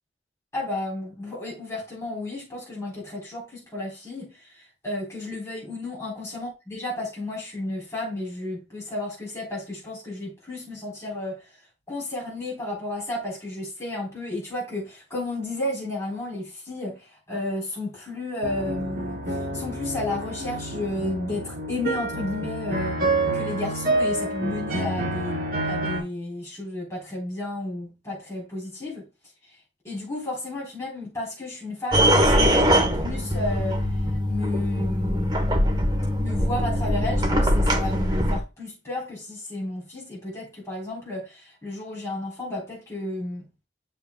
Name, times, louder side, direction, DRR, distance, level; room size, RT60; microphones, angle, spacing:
voice 1, 0.5-11.4 11.9-19.2 19.5-23.0 23.3-29.1 29.8-33.8 34.3-35.6 36.2-43.5, left 2 dB, 15° left, 3.7 m, -32 dB
sound 1, 18.4-26.0, right 2 dB, 50° right, 2.6 m, -28 dB
sound 2, 31.9-38.4, equal, 25° right, 1.0 m, -22 dB
7.7 x 6.8 x 2.2 m
head